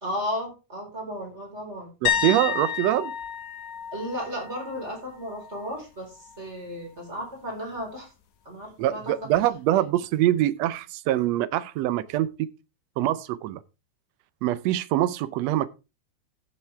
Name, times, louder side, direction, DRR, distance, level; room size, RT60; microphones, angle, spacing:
voice 1, 0.0-1.9 3.9-8.1 8.4-9.1 9.7-9.8, equal, 20° right, 4.3 m, -34 dB
voice 2, 2.0-3.1 8.8-12.5 13.0-13.6 14.4-15.7, right 13 dB, 75° right, 1.8 m, -24 dB
sound 1, 2.1-5.8 6.1-6.5 9.4-9.5, left 8 dB, 85° left, 2.6 m, -31 dB
15.0 x 7.3 x 3.4 m
omnidirectional pair, 3.3 m